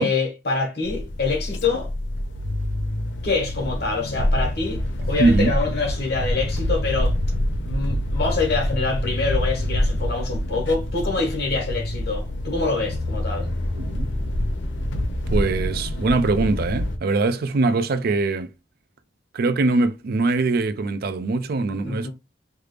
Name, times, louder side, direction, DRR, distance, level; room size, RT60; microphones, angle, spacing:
voice 1, 0.0-1.9 3.2-4.8 5.1-7.2 7.6-13.5 21.8-22.1, left 3 dB, 60° left, 1.3 m, -25 dB
sound 1, 0.8-17.0, left 1 dB, 80° left, 0.6 m, -26 dB
voice 2, 5.2-5.5 13.7-14.1 15.3-18.5 19.3-22.1, right 3 dB, 55° right, 0.4 m, -22 dB
3.3 x 2.4 x 3.2 m
head